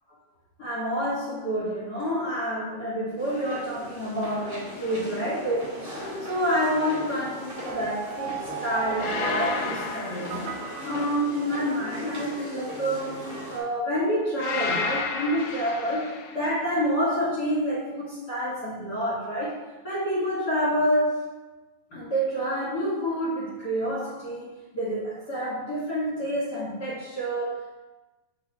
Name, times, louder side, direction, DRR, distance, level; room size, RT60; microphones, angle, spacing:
voice 1, 0.6-10.6 10.8-16.1 16.3-19.6 19.8-21.2 21.9-24.5 24.7-27.7, equal, 40° left, -8 dB, 1.6 m, -28 dB
sound 1, 3.2-13.6, equal, 10° right, 0.9 m, -39 dB
sound 2, 4.8-5.2 9.0-11.1 14.4-16.4, left 4 dB, 80° left, 2.0 m, -32 dB
sound 3, 7.7-12.0, right 7 dB, 80° right, 2.3 m, -37 dB
7.4 x 4.2 x 3.5 m, 1.1 s
omnidirectional pair, 4.2 m